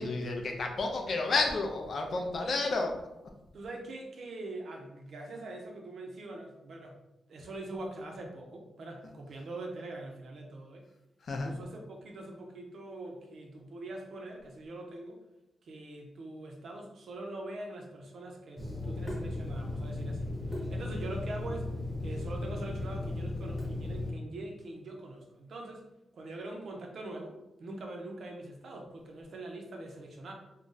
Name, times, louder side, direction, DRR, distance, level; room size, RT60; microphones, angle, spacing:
voice 1, 0.0-2.9 11.2-11.5, left 3 dB, 50° left, 3 dB, 0.5 m, -31 dB
voice 2, 2.4-2.7 3.5-7.0 7.3-10.8 11.4-15.2 15.6-21.7 22.0-25.9 26.1-30.3, right 2 dB, 60° right, 1 dB, 0.6 m, -43 dB
Water tap faucet / Sink (filling or washing), 18.6-24.1, left 2 dB, 5° left, 1.1 m, -36 dB
2.5 x 2.2 x 3.8 m, 0.95 s
wide cardioid pair, 140°, 0 cm